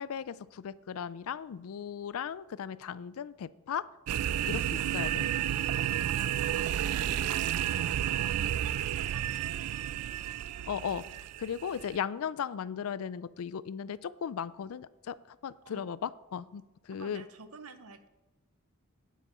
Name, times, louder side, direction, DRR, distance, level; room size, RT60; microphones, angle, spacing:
voice 1, 0.0-3.8 4.5-5.3 10.6-11.0 11.4-17.2, left 7 dB, 75° left, 18 dB, 0.4 m, -37 dB
sound 1, 4.1-12.0, right 11 dB, 90° right, 0.3 m, -31 dB
voice 2, 6.7-10.2 15.6-15.9 17.0-18.1, right 3 dB, 75° right, 10 dB, 0.8 m, -50 dB
9.3 x 8.2 x 4.3 m, 1.1 s
head